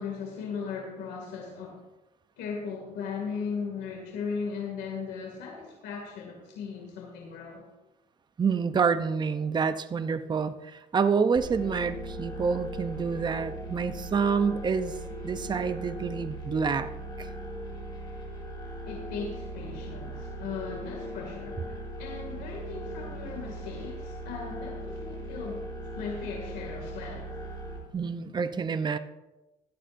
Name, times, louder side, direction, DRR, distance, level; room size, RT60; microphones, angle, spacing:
voice 1, 0.0-1.8 2.4-7.7 18.8-25.7 25.9-27.3, left 5 dB, 85° left, 0 dB, 2.3 m, -37 dB
voice 2, 8.4-14.9 15.2-16.9 17.2-17.3 27.9-29.0, right 5 dB, 25° right, 11 dB, 0.6 m, -27 dB
sound 1, 11.4-27.8, right 1 dB, 25° left, 4.0 m, -39 dB
15.5 x 13.0 x 2.6 m, 1.0 s
cardioid pair, 110°, 17 cm